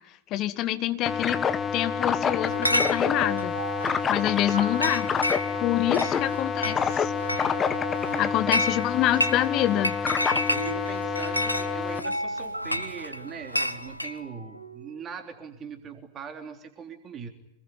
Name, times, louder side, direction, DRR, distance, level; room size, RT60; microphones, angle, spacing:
voice 1, 0.3-1.4 1.7-3.6 4.1-5.1 5.6-7.1 8.2-9.9, left 13 dB, 35° left, 9 dB, 2.0 m, -26 dB
sound 1, 1.1-12.0, left 6 dB, 20° left, 1.7 m, -28 dB
sound 2, 1.8-15.0, right 1 dB, 80° right, 1.5 m, -40 dB
Chatter / Chink clink, 2.5-14.2, left 1 dB, 90° left, 1.3 m, -31 dB
voice 2, 3.8-4.6 5.5-6.5 8.1-8.6 10.5-17.3, right 6 dB, 25° right, 5 dB, 3.4 m, -41 dB
27.0 x 20.5 x 9.8 m, 0.77 s
figure-of-eight pair, 90°, 0 cm